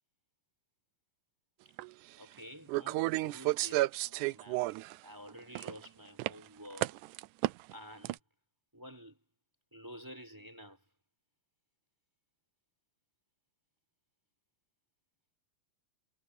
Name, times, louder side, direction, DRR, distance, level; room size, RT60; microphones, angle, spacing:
sound 1, 1.8-1.9 2.7-5.0 5.3-5.9 6.2-6.3 6.8-7.7 8.1-8.2, right 19 dB, 80° right, 2.0 m, -32 dB
voice 1, 2.2-4.6 5.0-7.0 7.7-8.2 8.7-9.2 9.7-10.8, equal, 5° right, 6.0 m, -50 dB
omnidirectional pair, 3.6 m